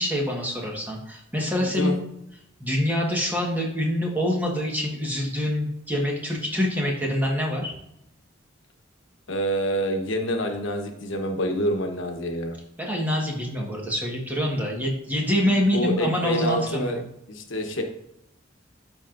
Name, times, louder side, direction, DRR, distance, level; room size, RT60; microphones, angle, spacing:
voice 1, 0.0-2.0 2.6-7.7 12.8-17.0, equal, 10° right, -2 dB, 1.4 m, -25 dB
voice 2, 1.6-1.9 9.3-12.6 15.4-17.0 17.3-17.8, equal, 75° left, 4 dB, 1.0 m, -27 dB
12.5 x 4.6 x 2.5 m, 0.81 s
head